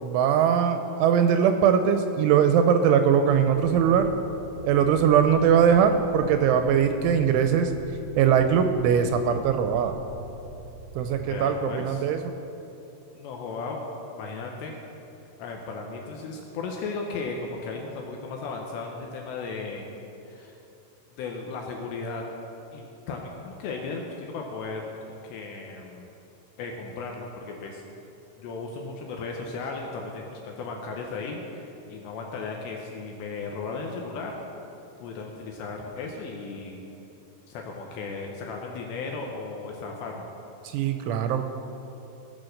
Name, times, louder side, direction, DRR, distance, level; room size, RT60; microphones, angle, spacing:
voice 1, 0.0-4.1 4.6-7.7 8.2-10.0 11.0-12.3 40.6-41.4, right 8 dB, 85° right, 7 dB, 2.9 m, -21 dB
sound 1, 3.3-11.3, right 1 dB, 30° left, 2.6 m, -44 dB
voice 2, 11.1-12.0 13.2-13.8 14.1-14.7 15.4-19.9 20.3-20.6 21.2-22.2 22.7-26.1 26.6-27.8 28.4-34.4 35.0-36.8 37.5-40.2, left 4 dB, 75° left, 1 dB, 2.7 m, -36 dB
17.0 x 6.4 x 6.4 m, 2.9 s
omnidirectional pair, 5.8 m